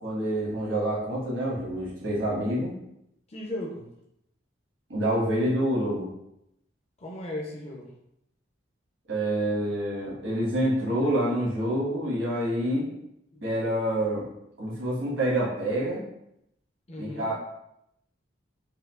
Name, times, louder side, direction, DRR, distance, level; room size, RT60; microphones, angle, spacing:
voice 1, 0.0-2.7 4.9-6.1 9.1-12.9 13.4-14.3 14.6-16.0 17.0-17.3, right 1 dB, 85° right, -6 dB, 1.3 m, -27 dB
voice 2, 3.3-3.9 7.0-7.9 13.3-13.5 16.9-17.3, left 1 dB, 30° left, -2 dB, 0.5 m, -36 dB
4.4 x 2.3 x 2.3 m, 0.79 s
head